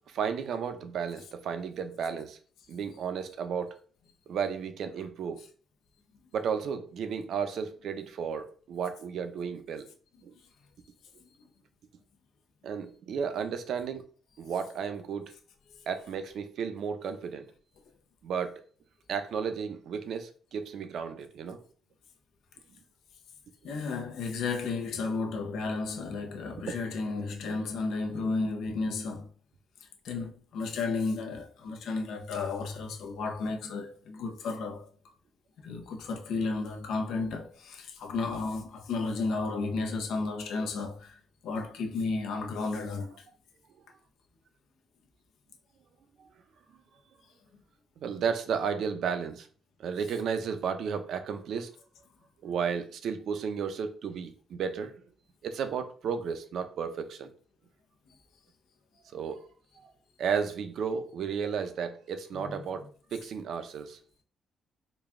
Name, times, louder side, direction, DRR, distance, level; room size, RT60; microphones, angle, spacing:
voice 1, 0.1-2.4 2.7-3.8 4.3-5.4 6.3-9.9 10.2-10.3 12.6-14.0 14.4-15.2 15.9-17.5 18.2-18.6 19.1-21.6 26.7-26.8 27.5-27.6 48.0-49.5 49.8-51.7 52.4-54.9 55.4-57.3 59.1-59.5 59.8-59.9 60.2-64.0, right 6 dB, 70° right, 0.5 m, -33 dB
voice 2, 23.6-29.3 30.0-34.9 35.6-41.2 41.4-43.1 62.4-62.6, left 3 dB, 80° left, 0.7 m, -33 dB
3.9 x 2.3 x 3.6 m
cardioid pair, 90°, 0 cm